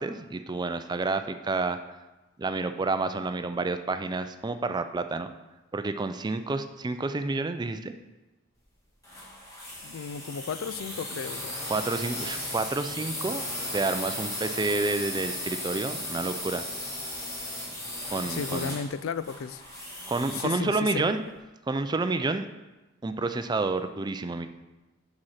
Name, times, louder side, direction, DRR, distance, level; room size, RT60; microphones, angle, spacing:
voice 1, 0.0-1.8 2.4-5.3 5.7-7.9 11.7-13.5 13.7-16.7 18.1-18.7 20.1-21.2 21.7-22.5 23.0-24.5, right 3 dB, 20° right, 9 dB, 0.4 m, -29 dB
sound 1, 9.0-20.6, left 1 dB, 15° left, 2.0 m, -36 dB
voice 2, 9.8-11.6 18.3-19.6 20.3-21.0, left 6 dB, 70° left, 15 dB, 0.4 m, -34 dB
7.6 x 6.2 x 4.3 m, 1.1 s
head